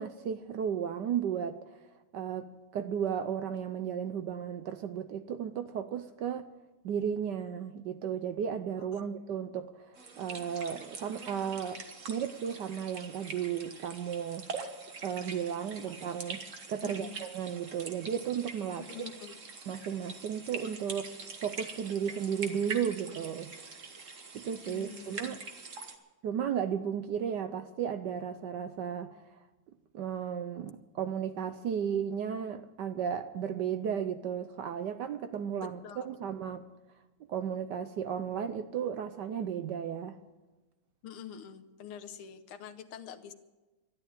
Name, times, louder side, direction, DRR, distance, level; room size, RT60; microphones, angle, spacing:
voice 1, 0.0-1.7 2.1-6.5 6.8-11.8 12.1-14.5 15.0-16.4 16.7-19.1 19.7-21.1 21.4-23.6 24.3-25.4 26.2-29.4 29.9-36.6 37.3-40.2, right 8 dB, 65° right, 1.1 m, -34 dB
sound 1, 10.0-26.0, right 4 dB, 40° right, 1.5 m, -44 dB
voice 2, 16.8-17.2 18.9-19.4 24.6-25.4 35.8-36.1 41.0-43.3, left 8 dB, 80° left, 1.8 m, -46 dB
13.0 x 11.5 x 8.8 m
omnidirectional pair, 2.4 m